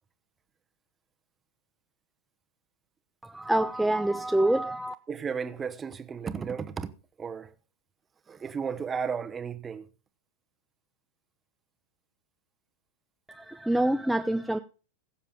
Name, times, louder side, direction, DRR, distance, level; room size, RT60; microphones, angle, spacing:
voice 1, 3.2-4.9 13.3-14.6, right 1 dB, 5° right, 0.5 m, -26 dB
voice 2, 5.1-6.9 7.2-7.5 8.3-9.9, right 6 dB, 20° right, 1.0 m, -34 dB
21.5 x 7.3 x 3.7 m
figure-of-eight pair, 90°, 0 cm